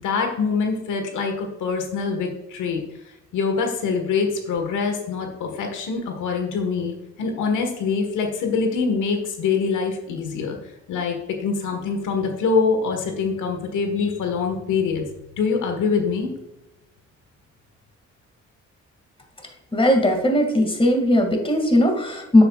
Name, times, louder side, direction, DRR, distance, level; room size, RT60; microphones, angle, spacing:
voice 1, 0.0-2.8 3.3-10.6 10.9-15.0 15.4-16.3, left 5 dB, 80° left, 4 dB, 1.5 m, -24 dB
voice 2, 19.7-22.4, left 1 dB, 20° left, 3 dB, 2.1 m, -18 dB
9.5 x 7.9 x 2.4 m, 0.93 s
cardioid pair, 90°, 30 cm